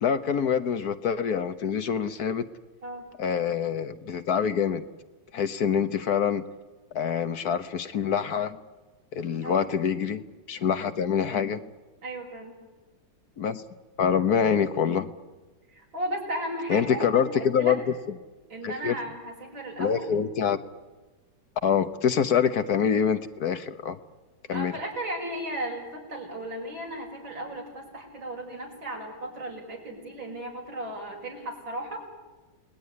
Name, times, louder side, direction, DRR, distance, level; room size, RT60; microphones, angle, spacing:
voice 1, 0.0-2.5 3.2-4.9 5.3-6.4 6.9-8.6 9.1-10.2 10.5-11.6 13.4-13.6 14.0-15.1 16.7-17.8 18.6-19.0 19.8-20.6 21.6-24.0 24.5-24.7, left 7 dB, 60° left, 11 dB, 1.4 m, -25 dB
voice 2, 12.0-12.5 15.7-17.8 18.5-20.2 24.5-32.0, right 1 dB, 85° right, 1 dB, 6.6 m, -35 dB
29.5 x 20.0 x 9.8 m, 1.3 s
omnidirectional pair, 2.0 m